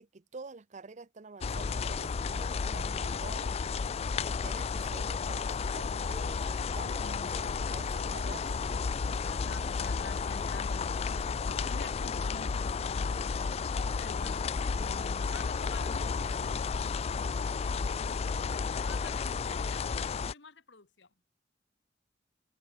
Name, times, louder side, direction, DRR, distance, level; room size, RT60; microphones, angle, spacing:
voice 1, 0.0-3.6 4.2-8.5, right 4 dB, 40° right, 0.6 m, -48 dB
sound 1, 1.4-20.3, left 5 dB, 35° left, 0.3 m, -32 dB
voice 2, 4.2-4.8 7.0-7.4 9.1-13.4 14.0-14.5 14.7-21.1, left 3 dB, 65° left, 1.8 m, -50 dB
head